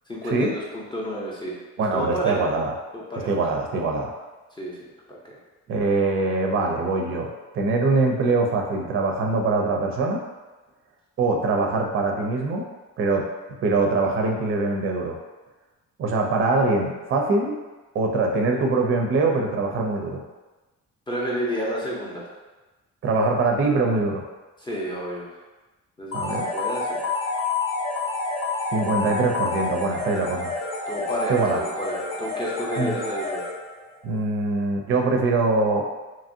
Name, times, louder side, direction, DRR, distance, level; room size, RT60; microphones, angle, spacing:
voice 1, 0.1-1.6 1.9-2.5 2.9-3.3 4.6-5.4 21.1-22.3 24.6-25.3 26.0-27.0 30.9-33.4, equal, 15° left, -5 dB, 0.5 m, -30 dB
voice 2, 1.8-2.7 3.2-4.1 5.7-7.3 7.5-10.2 11.2-12.7 13.0-13.3 13.6-15.2 16.0-17.5 17.9-20.2 23.0-24.2 26.1-26.5 28.7-30.5 31.3-31.6 32.8-33.0 34.0-35.9, right 3 dB, 45° right, 2 dB, 0.4 m, -23 dB
sound 1, 26.1-33.9, left 3 dB, 65° left, 0.9 m, -29 dB
2.9 x 2.5 x 2.6 m, 1.2 s
cardioid pair, 140°, 30 cm